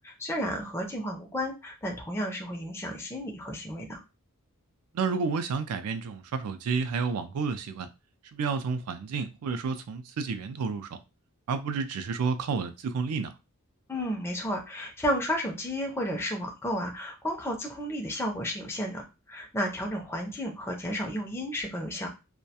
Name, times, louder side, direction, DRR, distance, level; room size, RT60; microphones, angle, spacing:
voice 1, 0.0-4.0 13.9-22.1, equal, 10° left, 0.4 m, -32 dB
voice 2, 4.9-7.9 8.3-11.0 11.5-13.3, right 5 dB, 85° right, 0.4 m, -30 dB
2.3 x 2.1 x 2.7 m
head